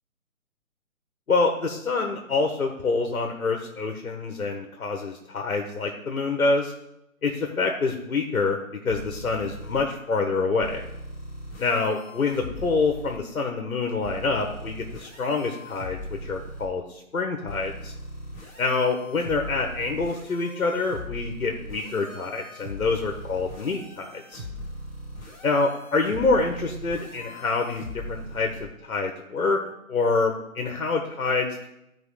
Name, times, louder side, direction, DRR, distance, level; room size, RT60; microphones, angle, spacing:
voice 1, 1.3-6.7 7.2-8.6 8.8-10.8 11.6-17.9 18.6-24.4 25.4-29.6 29.9-31.7, left 3 dB, 75° left, 3 dB, 1.5 m, -26 dB
sound 1, 8.9-9.8 10.6-13.2 14.0-16.7 17.5-28.6, equal, 15° left, 2.1 m, -39 dB
12.0 x 4.8 x 4.9 m, 0.84 s
figure-of-eight pair, 155°, 43 cm